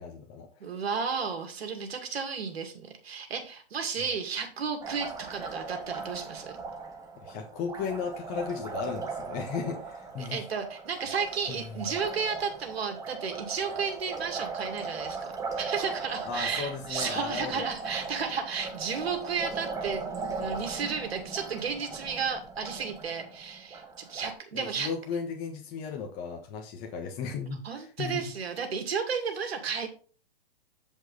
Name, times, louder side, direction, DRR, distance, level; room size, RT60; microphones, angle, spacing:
voice 1, 0.0-0.7 7.2-10.4 11.5-11.8 16.2-17.7 24.5-28.2, left 6 dB, 30° left, 2 dB, 1.2 m, -35 dB
voice 2, 0.6-6.6 10.2-24.9 27.6-29.9, right 6 dB, 80° right, 4 dB, 2.2 m, -33 dB
Liquid, 4.8-24.3, right 4 dB, 10° right, 1.0 m, -39 dB
8.7 x 5.3 x 4.1 m, 0.39 s
hypercardioid pair, 140°, 31 cm